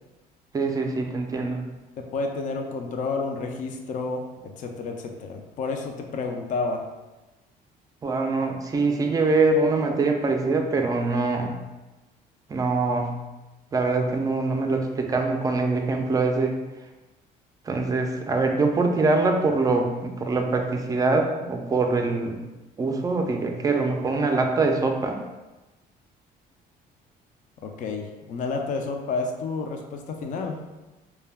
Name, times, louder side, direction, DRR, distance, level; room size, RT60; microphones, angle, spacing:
voice 1, 0.5-1.6 8.0-11.6 12.5-13.2 13.7-16.6 17.7-22.4 22.8-25.2, right 3 dB, 20° right, 3 dB, 0.4 m, -23 dB
voice 2, 2.0-6.8 27.6-30.6, left 3 dB, 50° left, 3 dB, 0.4 m, -30 dB
2.2 x 2.2 x 3.3 m, 1.1 s
cardioid pair, 110°, 17 cm